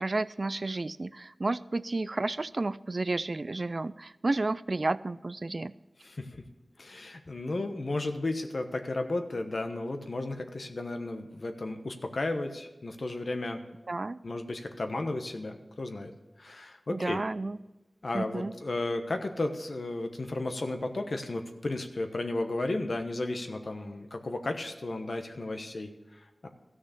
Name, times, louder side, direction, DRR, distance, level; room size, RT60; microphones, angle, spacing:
voice 1, 0.0-5.7 13.9-14.2 16.9-17.6 18.1-18.5, right 2 dB, 55° right, 17 dB, 0.3 m, -31 dB
voice 2, 6.0-6.4 6.8-13.6 14.2-16.1 16.4-17.2 18.0-26.5, left 2 dB, 70° left, 6 dB, 1.1 m, -34 dB
14.0 x 6.4 x 6.9 m, 1.0 s
wide cardioid pair, 50°, 0 cm